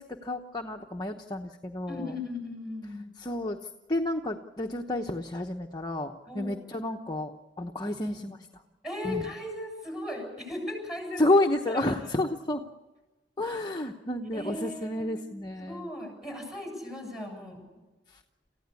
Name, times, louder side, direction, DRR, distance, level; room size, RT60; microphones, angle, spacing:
voice 1, 0.0-2.1 3.2-3.6 3.9-7.3 7.6-8.4 9.0-9.2 11.2-12.6 13.4-15.9, left 1 dB, 25° left, 2 dB, 1.0 m, -30 dB
voice 2, 1.9-3.1 6.3-6.6 7.8-8.3 8.8-11.3 11.7-12.0 13.5-13.6 14.3-15.2 15.6-17.6, left 1 dB, 5° right, 2 dB, 7.7 m, -37 dB
28.5 x 15.5 x 8.3 m, 1.2 s
head